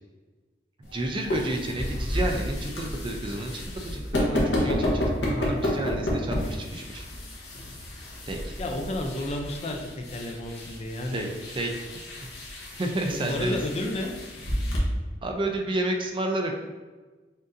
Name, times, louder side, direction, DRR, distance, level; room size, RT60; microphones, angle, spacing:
sound 1, 0.8-14.8, left 1 dB, 75° left, 1.0 m, -31 dB
voice 1, 0.9-7.0 8.3-8.5 11.1-11.3 11.5-11.7 12.7-13.6 15.2-16.5, right 1 dB, 30° right, 2 dB, 0.4 m, -30 dB
voice 2, 8.6-11.3 13.2-14.1, left 1 dB, 35° left, 3 dB, 0.5 m, -32 dB
6.3 x 2.6 x 2.5 m, 1.3 s
head